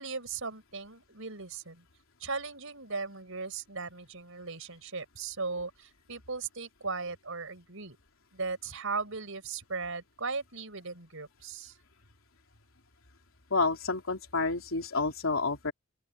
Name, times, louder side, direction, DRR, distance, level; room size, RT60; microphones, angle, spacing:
voice 1, 0.0-1.8 2.2-8.0 8.3-11.8, right 4 dB, 70° right, 5.6 m, -37 dB
voice 2, 13.5-15.7, left 3 dB, 75° left, 3.6 m, -29 dB
open air
head